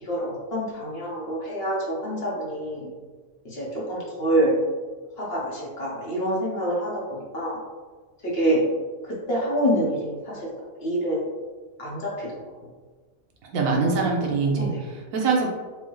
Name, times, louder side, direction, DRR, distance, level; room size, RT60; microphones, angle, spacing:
voice 1, 0.0-2.9 3.4-4.6 5.2-7.6 8.2-8.6 9.3-10.4 10.8-11.2 11.8-12.3 12.6-12.7 14.6-14.8, right 1 dB, 50° left, -5 dB, 1.2 m, -26 dB
voice 2, 13.4-15.5, right 4 dB, 85° right, 0 dB, 1.1 m, -24 dB
4.6 x 2.2 x 3.0 m, 1.4 s
omnidirectional pair, 1.4 m